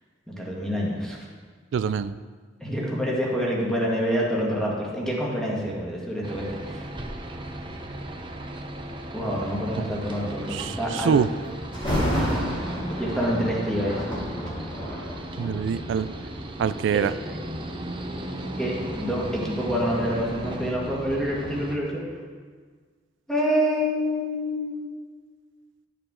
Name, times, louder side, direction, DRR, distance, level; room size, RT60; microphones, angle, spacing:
voice 1, 0.3-1.3 2.6-6.8 9.1-11.2 12.1-14.2 16.9-17.1 18.6-22.0 23.3-24.9, equal, 5° left, -4 dB, 1.8 m, -27 dB
voice 2, 1.7-2.1 10.5-11.3 15.4-16.1 16.6-17.1, right 7 dB, 70° right, 13 dB, 0.3 m, -24 dB
sound 1, 6.2-21.8, right 1 dB, 25° right, 0.7 m, -35 dB
Thunder, 11.7-16.7 17.4-17.6 18.2-21.0 21.4-21.5, equal, 25° left, 2.5 m, -31 dB
11.0 x 6.8 x 3.8 m, 1.6 s
head